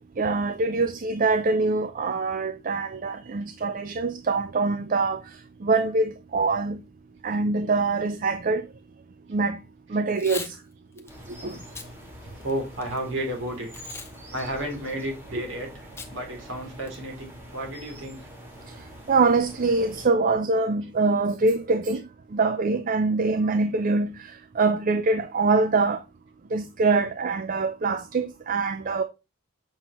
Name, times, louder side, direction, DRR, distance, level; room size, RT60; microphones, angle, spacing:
voice 1, 0.2-5.2 5.6-6.8 7.2-8.6 9.3-9.6 9.9-10.5 11.4-11.6 19.1-22.0 22.3-24.1 24.6-26.0 26.5-29.0, right 3 dB, 40° right, 0.4 m, -24 dB
Packing tape duct tape / Tearing, 10.1-10.5 11.0-11.1 11.6-11.9 12.4-13.0 13.7-14.1 14.4-14.5 16.0-16.1 16.5-16.6 16.9-17.2, left 4 dB, 10° left, 0.7 m, -38 dB
sound 1, 11.1-20.1, equal, 10° right, 1.8 m, -45 dB
voice 2, 12.2-13.9 14.3-15.8 16.1-18.3 26.9-27.1, right 1 dB, 55° right, 2.8 m, -32 dB
7.6 x 5.5 x 3.0 m
head